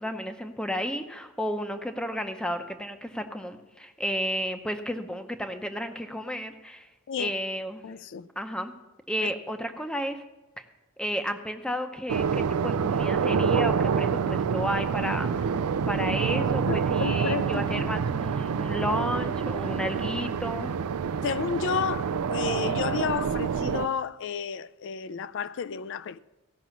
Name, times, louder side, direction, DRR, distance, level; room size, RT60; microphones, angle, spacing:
voice 1, 0.0-6.9 7.2-7.8 8.4-8.7 9.1-10.2 11.0-15.6 15.9-20.8, equal, 5° left, 0.7 m, -32 dB
voice 2, 7.8-8.3 9.2-9.3 16.7-17.9 21.2-26.2, left 6 dB, 55° left, 0.4 m, -31 dB
sound 1, 12.1-23.9, right 6 dB, 85° right, 0.4 m, -27 dB
16.0 x 6.1 x 6.9 m
head